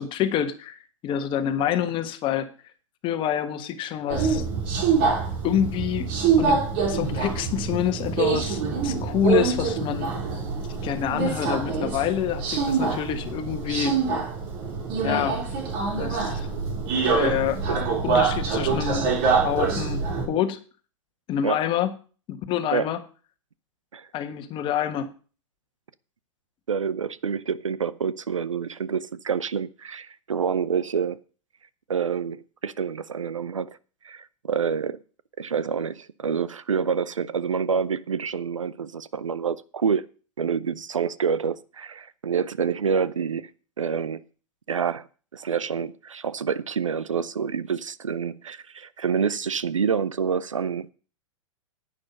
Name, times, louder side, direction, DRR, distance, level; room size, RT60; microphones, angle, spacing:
voice 1, 0.0-2.5 3.0-4.4 5.4-6.1 6.4-10.1 10.8-14.0 15.0-15.4 16.0-16.5 17.1-17.6 18.0-19.2 19.4-20.6 21.3-21.9 22.3-23.0 24.1-25.1, left 10 dB, 30° left, 1.5 m, -27 dB
Subway metro underground, 4.1-20.3, right 5 dB, 45° right, 3.6 m, -25 dB
voice 2, 26.7-31.2 31.9-33.8 34.0-35.0 35.4-40.0 40.4-43.5 43.8-44.2 44.7-45.1 45.3-50.9, right 6 dB, 75° right, 0.7 m, -27 dB
10.5 x 9.1 x 5.4 m
figure-of-eight pair, 100°, 16 cm